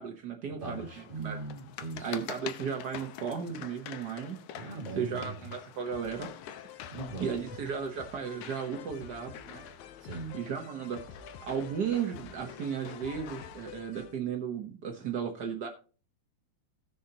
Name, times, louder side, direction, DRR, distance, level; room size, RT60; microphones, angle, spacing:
voice 1, 0.0-1.5 2.0-4.4 4.9-6.3 7.2-9.6 10.3-11.0 11.4-15.7, right 7 dB, 70° right, 0.9 m, -35 dB
sound 1, 0.6-13.7, left 10 dB, 75° left, 1.6 m, -47 dB
voice 2, 0.6-2.1 4.6-5.4 6.9-7.3 10.0-10.4, right 3 dB, 20° right, 1.6 m, -39 dB
sound 2, 5.9-14.2, left 7 dB, 90° left, 2.3 m, -49 dB
18.0 x 6.7 x 2.8 m
omnidirectional pair, 3.3 m